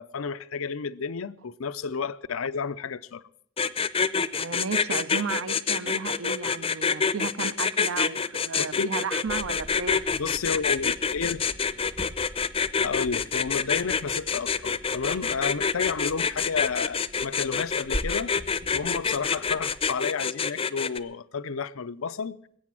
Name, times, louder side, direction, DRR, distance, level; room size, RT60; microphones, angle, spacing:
voice 1, 0.0-3.2 8.6-8.9 10.1-11.4 12.8-18.3 18.7-22.6, left 5 dB, 75° left, 0.6 m, -31 dB
sound 1, 3.6-21.0, left 6 dB, 30° left, 0.6 m, -26 dB
voice 2, 4.4-10.1, right 5 dB, 70° right, 0.7 m, -33 dB
sound 2, 9.2-19.9, equal, 35° right, 1.3 m, -42 dB
21.0 x 8.5 x 7.4 m
head